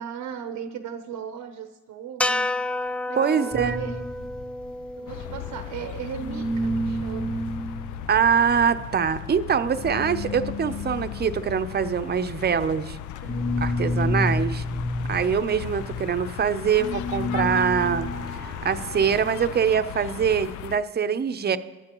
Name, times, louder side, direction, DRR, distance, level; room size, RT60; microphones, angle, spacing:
voice 1, 0.0-2.5 3.1-4.1 5.0-7.5 13.6-14.1, right 8 dB, 80° right, 7 dB, 0.9 m, -37 dB
sound 1, 2.2-6.5, left 1 dB, 5° left, 0.3 m, -31 dB
voice 2, 3.1-3.8 8.1-13.0 13.6-14.6 15.1-18.1 18.4-21.6, right 7 dB, 35° right, 10 dB, 0.7 m, -24 dB
sound 2, 3.5-5.9 6.1-19.2, left 1 dB, 45° left, 2.6 m, -31 dB
sound 3, 5.1-20.8, left 12 dB, 75° left, 0.5 m, -37 dB
24.0 x 9.3 x 3.0 m, 1.2 s
cardioid pair, 90°, 30 cm